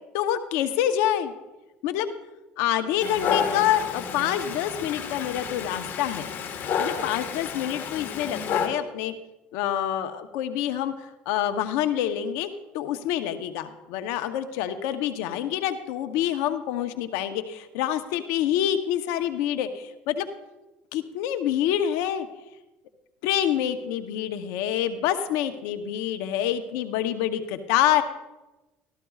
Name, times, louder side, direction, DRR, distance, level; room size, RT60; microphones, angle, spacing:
voice 1, 0.1-1.3 1.8-2.1 2.6-6.3 6.8-9.1 9.5-12.5 12.7-20.3 20.9-22.3 23.2-28.0, left 11 dB, 80° left, 9 dB, 0.7 m, -27 dB
Dog, 3.0-8.7, left 7 dB, 55° left, 1.5 m, -30 dB
13.5 x 13.0 x 2.4 m, 1.0 s
supercardioid pair, 90°, 4 cm